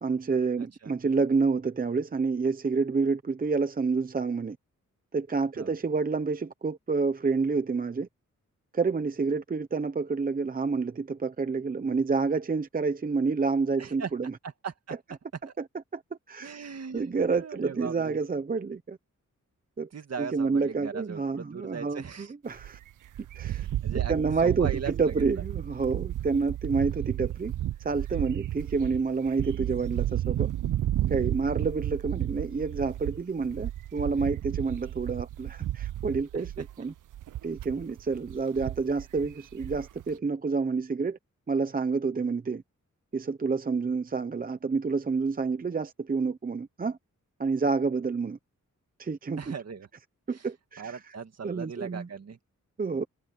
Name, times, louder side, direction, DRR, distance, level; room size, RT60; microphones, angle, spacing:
voice 1, 0.0-4.6 5.1-8.1 8.7-14.3 15.9-16.0 16.3-16.6 16.9-19.0 19.8-19.9 20.2-22.8 23.3-23.7 24.1-27.5 27.8-30.5 31.1-36.9 37.4-41.2 41.5-42.6 43.1-47.0 47.4-48.4 49.0-49.4 50.3-51.0 51.4-52.1 52.8-53.0, right 4 dB, 30° right, 0.7 m, -28 dB
voice 2, 0.6-0.9 5.6-5.7 13.8-14.1 14.4-15.0 15.5-15.6 16.4-18.2 19.9-22.3 23.4-25.1 36.3-36.6 49.4-49.9 50.3-50.5 50.8-52.4, right 6 dB, 55° right, 2.2 m, -39 dB
sound 1, 22.5-40.0, right 13 dB, 80° right, 0.5 m, -33 dB
wide cardioid pair, 175°, 31 cm